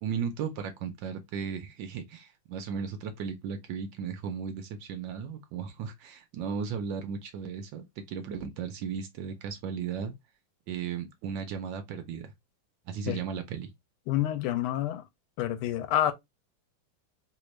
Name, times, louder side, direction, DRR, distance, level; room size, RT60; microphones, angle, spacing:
voice 1, 0.0-10.2 10.7-12.3 12.9-13.7, right 7 dB, 75° right, 1.2 m, -35 dB
voice 2, 14.1-15.0 15.4-16.1, left 12 dB, 85° left, 1.5 m, -28 dB
3.5 x 2.5 x 3.0 m
omnidirectional pair, 2.4 m